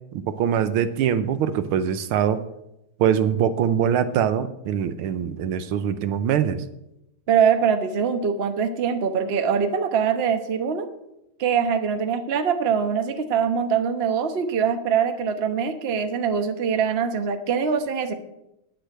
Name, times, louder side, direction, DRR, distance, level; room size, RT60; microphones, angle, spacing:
voice 1, 0.1-2.4 3.0-6.6, right 8 dB, 85° right, 11 dB, 1.6 m, -23 dB
voice 2, 7.3-10.9 11.4-18.1, right 7 dB, 40° right, 7 dB, 0.9 m, -23 dB
9.9 x 6.7 x 7.6 m, 0.86 s
omnidirectional pair, 2.4 m